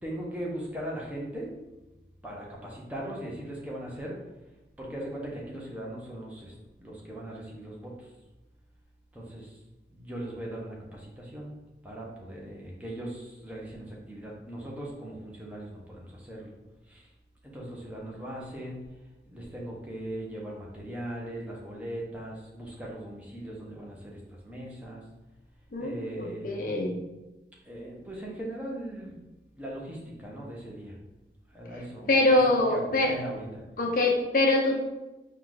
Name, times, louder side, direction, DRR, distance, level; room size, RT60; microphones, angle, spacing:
voice 1, 0.0-1.5 2.2-4.2 4.8-8.1 9.1-9.6 9.9-11.6 11.8-16.5 16.9-17.1 17.4-18.8 19.3-25.0 25.8-26.8 27.6-29.2 29.5-31.0 31.5-32.4 32.7-33.6, right 1 dB, 10° right, -3 dB, 0.8 m, -39 dB
voice 2, 25.7-27.0 32.1-33.1 33.8-34.8, left 2 dB, 50° left, 1 dB, 0.6 m, -24 dB
4.6 x 2.4 x 3.8 m, 1.0 s
head